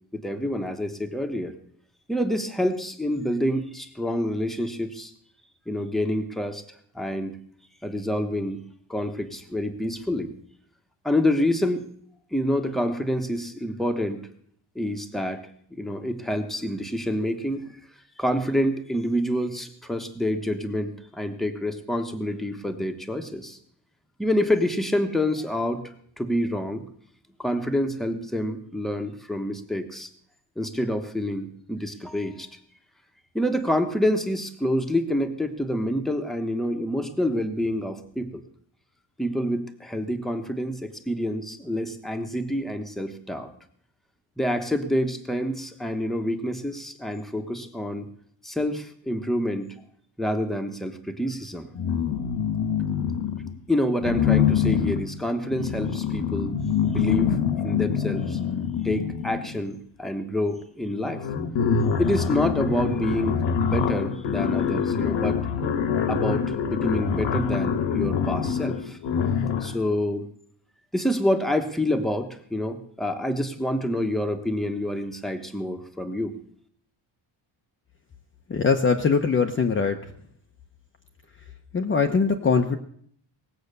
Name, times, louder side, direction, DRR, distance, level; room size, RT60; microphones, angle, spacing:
voice 1, 0.1-1.5 2.1-5.1 5.7-6.6 6.9-7.4 7.8-8.6 8.9-10.3 11.0-11.8 12.3-14.2 14.7-15.4 15.8-17.8 18.2-23.6 24.2-25.8 26.2-26.8 27.4-30.1 30.6-32.5 33.3-38.4 39.2-43.5 44.4-48.1 48.4-49.7 50.2-51.7 53.7-57.4 57.6-58.4 58.8-61.2 62.0-65.4 66.1-69.0 69.6-70.3 70.9-76.3, left 1 dB, ahead, 5 dB, 1.1 m, -27 dB
sound 1, 51.7-53.6 54.0-59.7 60.6-60.7 61.0-69.9, left 7 dB, 65° left, 1.4 m, -25 dB
voice 2, 78.5-80.0 81.7-82.8, left 5 dB, 25° left, 4 dB, 0.8 m, -22 dB
19.0 x 8.0 x 6.7 m, 0.63 s
cardioid pair, 170°, 48 cm